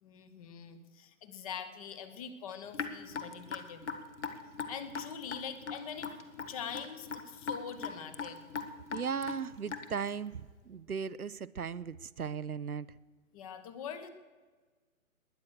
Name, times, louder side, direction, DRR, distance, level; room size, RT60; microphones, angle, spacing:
voice 1, 0.0-3.8 4.7-6.1 6.5-8.4 13.3-14.1, left 7 dB, 25° left, 11 dB, 1.1 m, -43 dB
Raindrop / Drip, 2.7-10.1, left 5 dB, 55° left, 1.7 m, -39 dB
voice 2, 8.9-12.9, right 6 dB, 85° right, 15 dB, 0.7 m, -37 dB
20.5 x 9.6 x 6.5 m, 1.4 s
figure-of-eight pair, 130°, 43 cm